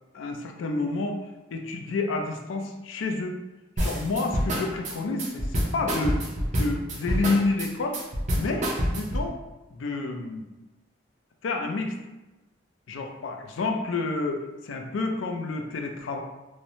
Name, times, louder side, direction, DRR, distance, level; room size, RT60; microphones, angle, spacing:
voice 1, 0.1-3.4 3.8-6.2 6.5-8.0 8.3-9.3 9.7-10.5 11.4-11.9 12.9-16.2, left 3 dB, 85° left, 3 dB, 0.4 m, -29 dB
sound 1, 3.8-9.3, equal, 35° right, 0.4 m, -27 dB
3.0 x 2.0 x 2.7 m, 1.1 s
head